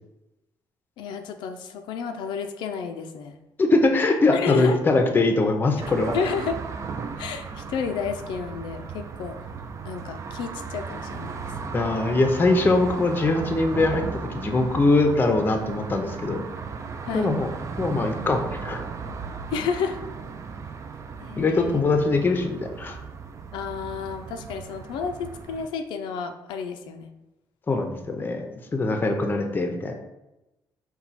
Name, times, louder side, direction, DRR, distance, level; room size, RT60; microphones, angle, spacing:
voice 1, 1.0-3.4 4.3-4.8 6.1-6.5 7.2-9.4 9.9-11.5 17.1-17.3 19.5-20.0 21.2-21.8 23.5-27.1, left 6 dB, 90° left, 6 dB, 0.4 m, -31 dB
voice 2, 3.6-6.1 11.7-16.4 17.1-17.5 17.8-18.8 21.4-23.0 27.7-29.9, left 3 dB, 25° left, 5 dB, 0.5 m, -22 dB
sound 1, 5.8-25.7, right 5 dB, 40° right, 0.3 m, -36 dB
4.3 x 2.2 x 4.0 m, 0.97 s
cardioid pair, 110°, 8 cm